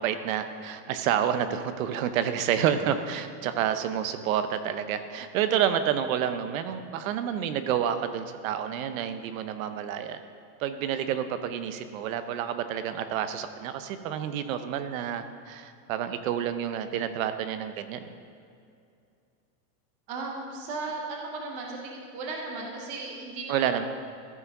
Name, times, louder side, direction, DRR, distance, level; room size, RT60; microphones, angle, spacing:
voice 1, 0.0-10.2 10.6-18.1 23.5-23.8, right 9 dB, 55° right, 10 dB, 0.7 m, -29 dB
voice 2, 20.1-23.8, right 3 dB, 15° right, 0 dB, 0.4 m, -36 dB
14.0 x 4.9 x 5.3 m, 2.4 s
supercardioid pair, 175°, 48 cm